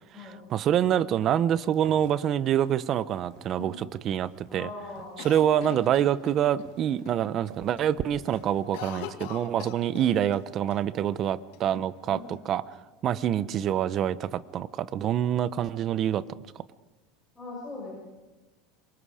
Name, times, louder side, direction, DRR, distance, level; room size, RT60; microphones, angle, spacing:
voice 1, 0.2-4.7 5.2-12.7 13.0-16.2, right 10 dB, 30° right, 16 dB, 0.7 m, -26 dB
sound 1, 1.5-9.5, right 6 dB, 50° right, 4.0 m, -54 dB
voice 2, 4.5-5.2 5.6-6.0 9.8-10.1 12.0-12.4 13.3-13.6 17.3-17.9, left 3 dB, 10° left, -6 dB, 6.7 m, -42 dB
Cough, 5.2-6.7 7.0-7.1 7.5-7.9 8.2-10.4 10.7-10.8 11.5-12.3, left 10 dB, 70° left, 2.1 m, -42 dB
27.0 x 23.5 x 5.0 m, 1.2 s
supercardioid pair, 160°, 0 cm